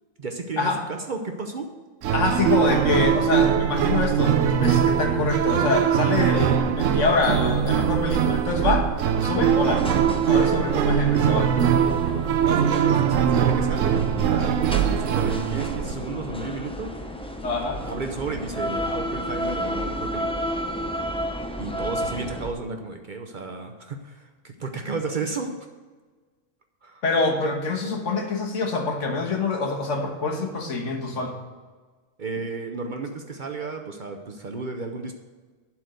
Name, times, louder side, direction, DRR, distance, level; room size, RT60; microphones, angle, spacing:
voice 1, 0.2-1.8 12.4-17.0 17.8-20.4 21.6-25.6 26.8-27.0 32.2-35.1, right 3 dB, 45° right, 5 dB, 0.8 m, -33 dB
sound 1, 2.0-15.9, right 8 dB, 80° right, 1.0 m, -22 dB
voice 2, 2.1-8.9 9.2-9.9 10.3-11.5 17.4-17.9 27.0-31.4, left 3 dB, 70° left, 2 dB, 1.7 m, -25 dB
sound 2, 9.4-22.5, equal, 5° left, 0.5 m, -32 dB
11.5 x 4.4 x 7.9 m, 1.4 s
omnidirectional pair, 1.3 m